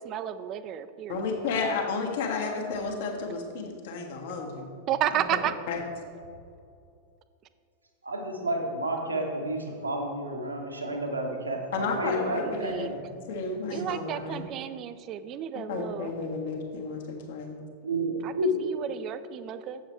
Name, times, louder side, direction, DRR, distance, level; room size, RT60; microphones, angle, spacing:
voice 1, 0.1-1.2 4.9-5.5 12.3-12.9 13.7-16.1 18.2-18.3 18.6-19.8, right 11 dB, 35° right, 12 dB, 0.4 m, -32 dB
voice 2, 1.1-4.7 5.1-5.4 5.7-5.8 11.7-12.9 13.3-14.4 15.5-17.6, left 4 dB, 55° left, 1 dB, 1.3 m, -32 dB
voice 3, 8.0-13.1 13.6-13.8 17.8-18.8, right 1 dB, 80° right, 2 dB, 1.1 m, -31 dB
7.9 x 7.1 x 4.4 m, 2.4 s
figure-of-eight pair, 90°, 0 cm